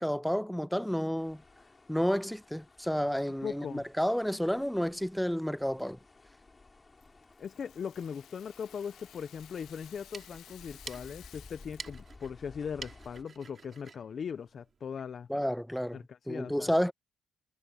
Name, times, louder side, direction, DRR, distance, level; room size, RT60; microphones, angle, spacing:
voice 1, 0.0-1.4 1.9-6.0 15.3-16.0 16.3-16.9, equal, ahead, 0.5 m, -30 dB
sound 1, 1.2-13.2, left 3 dB, 25° left, 3.3 m, -56 dB
voice 2, 3.4-3.9 7.4-15.3 15.9-16.7, left 7 dB, 50° left, 0.7 m, -39 dB
Rattle (instrument), 7.0-12.1, left 11 dB, 80° left, 1.7 m, -55 dB
sound 2, 9.9-15.1, right 5 dB, 40° right, 5.3 m, -50 dB
cardioid pair, 90°, 0 cm